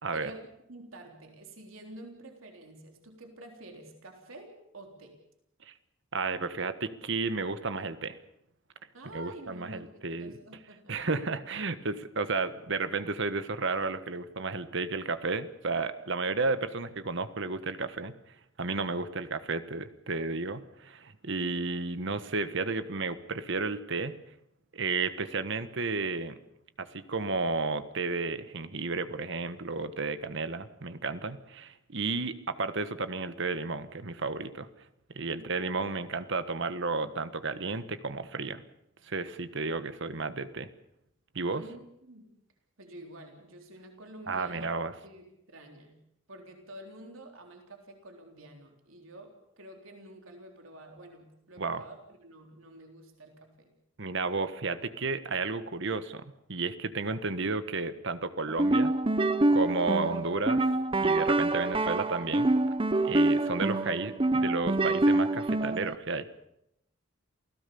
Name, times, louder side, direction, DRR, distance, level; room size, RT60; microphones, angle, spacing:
voice 1, 0.1-5.2 8.9-9.9 10.2-10.9 35.3-35.5 41.5-42.4 42.8-44.7 45.0-46.0 46.3-53.7, right 1 dB, 80° right, 3 dB, 3.7 m, -49 dB
voice 2, 6.1-8.2 9.1-10.3 10.9-18.1 18.6-24.1 24.7-26.3 26.8-34.7 35.1-38.6 39.0-40.7 41.3-41.6 44.3-44.9 51.6-51.8 54.0-56.2 56.5-58.9 59.5-60.6 61.0-62.5 63.0-66.3, right 3 dB, 65° right, 11 dB, 1.4 m, -32 dB
sound 1, 58.5-65.9, right 2 dB, 25° right, 0.9 m, -26 dB
28.5 x 16.5 x 7.0 m, 0.81 s
head